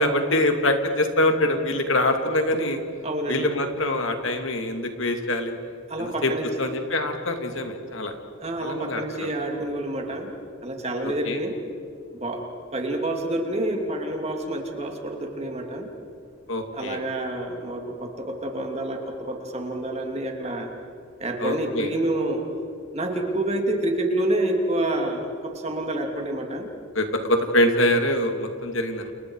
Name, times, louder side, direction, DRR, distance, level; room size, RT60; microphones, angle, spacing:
voice 1, 0.0-2.8 3.3-5.5 6.0-6.3 6.6-8.1 8.6-9.3 11.0-11.4 16.5-17.0 21.4-21.9 26.9-29.1, left 1 dB, 65° left, 5 dB, 2.4 m, -24 dB
voice 2, 3.0-3.5 5.9-6.5 8.4-10.3 10.6-11.6 12.1-12.4 12.7-15.9 16.7-20.7 21.2-22.4 22.9-26.7, right 1 dB, 30° right, 2 dB, 3.0 m, -28 dB
30.0 x 30.0 x 4.8 m, 2.5 s
head